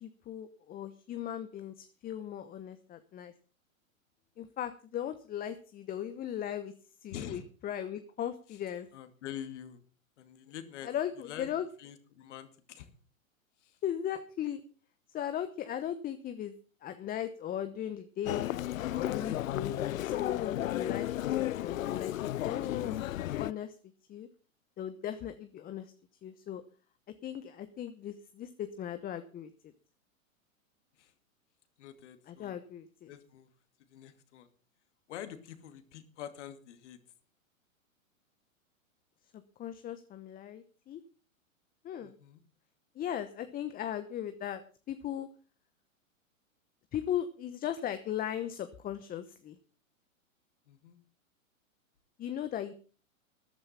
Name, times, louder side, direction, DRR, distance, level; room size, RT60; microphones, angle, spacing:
voice 1, 0.0-3.3 4.4-6.7 7.0-8.9 10.9-11.6 13.8-14.6 15.1-16.5 16.8-18.5 18.9-23.7 24.1-24.3 24.8-25.9 26.2-26.6 27.2-29.5 32.3-33.1 39.6-41.0 41.8-42.1 43.0-44.6 44.9-45.3 46.9-49.5 52.2-52.7, left 10 dB, 20° left, 10 dB, 1.0 m, -37 dB
voice 2, 7.1-7.5 8.5-8.6 8.9-9.8 10.2-10.9 11.2-12.9 13.6-13.8 31.0-31.1 31.8-32.6 33.1-33.5 33.8-34.5 35.1-37.0 42.0-42.4 50.7-51.0, left 10 dB, 60° left, 9 dB, 2.4 m, -46 dB
Human voice, 18.3-23.5, left 13 dB, 75° left, 0.6 m, -33 dB
14.0 x 11.0 x 5.7 m, 0.39 s
hypercardioid pair, 115°, 41 cm